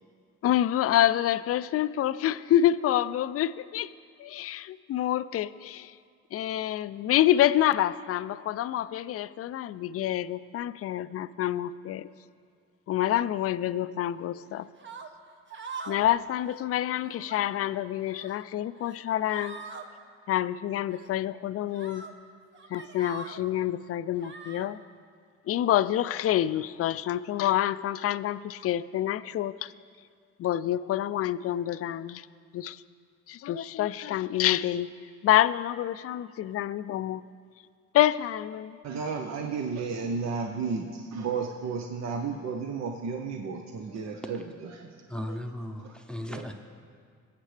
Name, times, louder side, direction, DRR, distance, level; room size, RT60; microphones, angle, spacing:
voice 1, 0.4-3.9 4.2-5.9 6.3-12.1 12.9-14.7 15.9-19.6 20.3-22.0 22.7-24.8 25.5-29.7 30.4-32.3 32.5-32.8 33.3-34.9 35.2-37.2 37.9-38.8, left 12 dB, 50° left, 16 dB, 0.4 m, -27 dB
sound 1, 14.8-15.1 15.5-16.1 16.4-16.6 17.0-17.4 17.9-18.4 18.8-19.0 19.3-19.8 20.9-21.1 21.7-22.1 22.5-23.4 24.2-24.7, right 4 dB, 40° right, 1.0 m, -43 dB
voice 2, 38.8-45.0 45.3-45.4 45.8-45.9 46.3-46.5, right 5 dB, 60° right, 3 dB, 0.8 m, -33 dB
voice 3, 45.1-46.5, left 1 dB, 5° left, 5 dB, 0.8 m, -36 dB
20.5 x 8.2 x 3.3 m, 2.1 s
cardioid pair, 90°, 30 cm